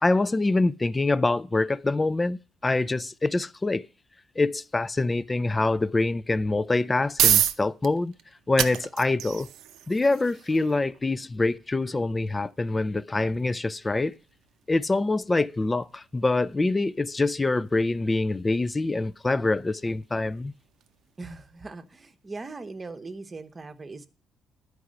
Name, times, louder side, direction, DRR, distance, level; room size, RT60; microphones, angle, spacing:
voice 1, 0.0-3.9 4.4-8.1 8.5-9.5 9.9-14.1 14.7-20.5, left 2 dB, 20° left, 0.4 m, -25 dB
sound 1, 6.7-21.6, right 11 dB, 90° right, 0.6 m, -33 dB
voice 2, 21.2-24.1, right 3 dB, 25° right, 0.9 m, -40 dB
11.5 x 4.8 x 6.3 m
cardioid pair, 115°, 0 cm